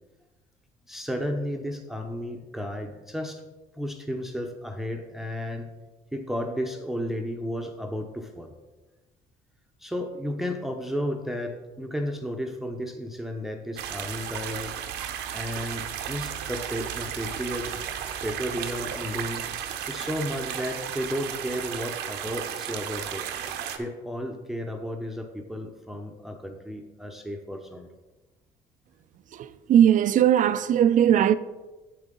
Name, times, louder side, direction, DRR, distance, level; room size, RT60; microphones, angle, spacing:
voice 1, 0.9-3.4 3.7-5.7 6.1-8.5 9.8-14.7 15.3-17.8 18.2-19.4 19.9-23.2 23.8-27.9, equal, ahead, 0.7 m, -33 dB
sound 1, 13.8-23.8, right 9 dB, 85° right, 0.9 m, -34 dB
voice 2, 29.3-31.3, right 10 dB, 50° right, 0.4 m, -19 dB
8.1 x 7.8 x 3.8 m
cardioid pair, 110°, 17 cm